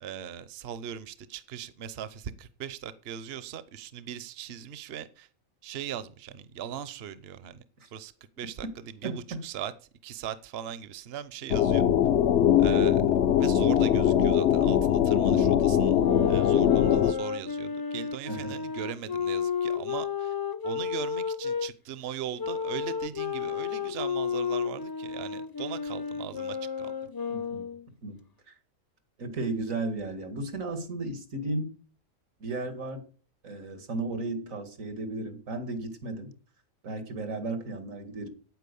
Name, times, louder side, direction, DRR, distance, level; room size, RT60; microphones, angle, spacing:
voice 1, 0.0-5.3 5.6-7.6 7.9-8.1 8.4-9.7 10.0-11.9 12.6-13.0 13.4-16.0 16.3-20.3 20.6-26.9, right 9 dB, 55° right, 0.9 m, -39 dB
voice 2, 9.0-9.4 18.3-18.6 27.3-27.7 28.0-28.5 29.2-31.8 32.4-33.1 33.4-36.3 36.8-38.3, right 2 dB, 90° right, 2.4 m, -34 dB
sound 1, 11.5-17.1, left 10 dB, 65° left, 0.9 m, -22 dB
sound 2, 15.9-21.7 22.4-27.9, left 6 dB, 25° left, 0.6 m, -32 dB
9.1 x 9.0 x 6.9 m
omnidirectional pair, 1.3 m